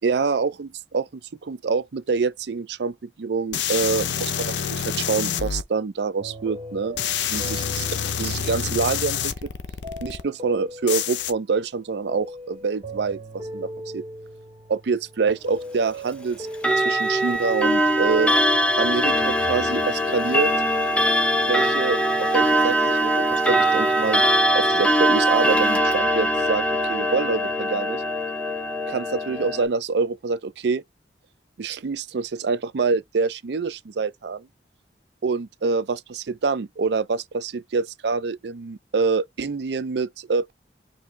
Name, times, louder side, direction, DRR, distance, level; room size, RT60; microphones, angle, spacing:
voice 1, 0.0-7.0 7.3-7.9 8.2-9.3 10.0-14.0 14.7-16.5 16.8-18.3 18.8-20.5 21.5-24.2 24.5-26.6 26.9-28.0 28.9-30.8 31.6-34.5 35.2-40.5, right 4 dB, 70° right, 0.5 m, -26 dB
sound 1, 3.5-5.6 7.0-10.2 10.9-11.3, left 8 dB, 85° left, 0.6 m, -27 dB
sound 2, 6.2-11.3 11.9-19.8, equal, 30° right, 1.6 m, -39 dB
Clock, 16.5-29.6, equal, 5° left, 0.7 m, -21 dB
4.7 x 2.8 x 3.2 m
head